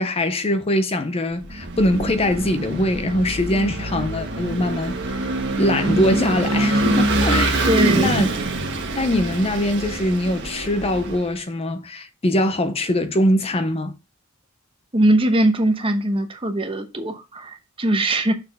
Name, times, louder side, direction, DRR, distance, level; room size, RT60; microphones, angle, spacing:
voice 1, 0.0-5.2 5.6-7.7 7.9-8.3 9.0-13.9, left 1 dB, 25° left, 0.6 m, -22 dB
Vehicle / Engine, 1.5-11.3, right 2 dB, 50° right, 1.4 m, -24 dB
voice 2, 7.7-8.3 14.9-18.3, right 1 dB, 25° right, 1.0 m, -20 dB
6.6 x 4.3 x 5.3 m
head